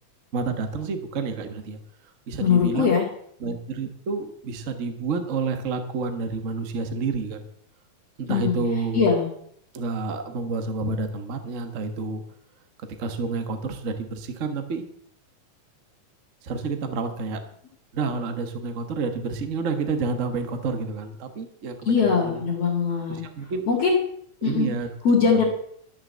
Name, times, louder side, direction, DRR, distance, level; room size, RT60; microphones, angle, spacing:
voice 1, 0.3-1.8 2.3-3.0 3.4-7.4 8.2-9.0 9.7-12.2 13.0-14.8 16.4-17.4 17.9-22.4 23.1-23.7 24.4-24.9 25.3-25.4, right 4 dB, 90° right, 7 dB, 0.6 m, -29 dB
voice 2, 2.4-3.0 8.3-8.6 8.9-9.3 21.9-23.2 23.7-24.0 24.4-24.7 25.0-25.4, left 5 dB, 55° left, -3 dB, 3.0 m, -21 dB
13.0 x 6.6 x 7.3 m, 0.67 s
omnidirectional pair, 3.6 m